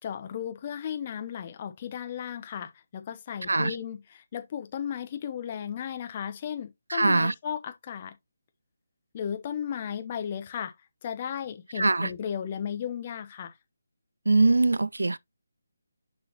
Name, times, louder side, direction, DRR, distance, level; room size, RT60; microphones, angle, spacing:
voice 1, 0.0-8.1 9.1-10.7 11.0-13.5, left 8 dB, 25° left, 0.9 m, -35 dB
voice 2, 6.9-7.3 11.8-12.1 14.3-15.2, right 3 dB, 65° right, 0.3 m, -22 dB
6.9 x 5.4 x 2.8 m
figure-of-eight pair, 150°, 0 cm